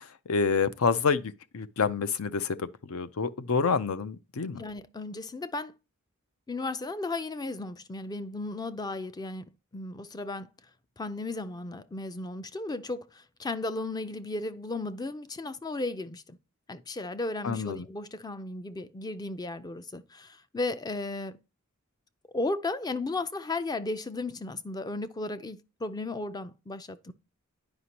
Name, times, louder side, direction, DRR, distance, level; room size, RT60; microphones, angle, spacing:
voice 1, 0.0-4.6 17.4-17.9, left 5 dB, 70° left, 0.6 m, -28 dB
voice 2, 4.6-5.7 6.5-10.5 11.0-16.4 16.7-21.4 22.3-27.1, left 2 dB, 20° left, 0.4 m, -35 dB
9.7 x 5.1 x 2.9 m
head